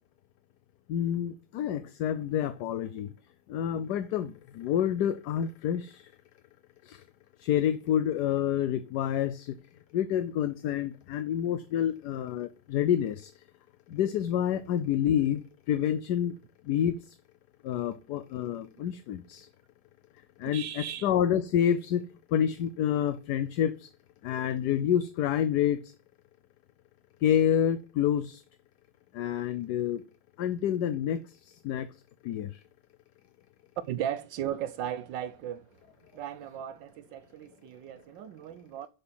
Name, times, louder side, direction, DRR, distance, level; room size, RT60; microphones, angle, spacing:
voice 1, 0.9-3.1 3.5-6.1 6.8-7.0 7.4-9.5 9.9-13.3 13.9-16.3 16.7-17.1 17.6-19.5 20.4-22.0 22.3-23.9 24.2-25.9 27.2-28.4 29.1-30.0 30.4-31.9 32.2-32.6, left 10 dB, 70° left, 1.1 m, -28 dB
voice 2, 20.5-21.1 33.8-35.7 36.1-38.9, right 10 dB, 80° right, 1.3 m, -36 dB
7.6 x 7.0 x 7.5 m
omnidirectional pair, 2.0 m